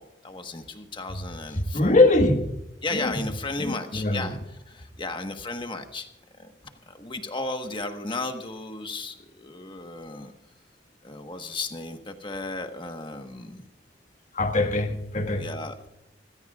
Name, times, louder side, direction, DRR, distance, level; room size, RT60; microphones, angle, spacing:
voice 1, 0.0-1.9 2.8-6.1 6.4-6.5 6.9-10.3 11.0-13.7 14.8-14.9 15.4-15.9, left 2 dB, 25° left, 1.3 m, -35 dB
voice 2, 1.7-2.5 2.9-3.1 3.6-4.3 14.3-15.5, left 2 dB, 45° left, 1.5 m, -22 dB
25.0 x 16.0 x 2.4 m
head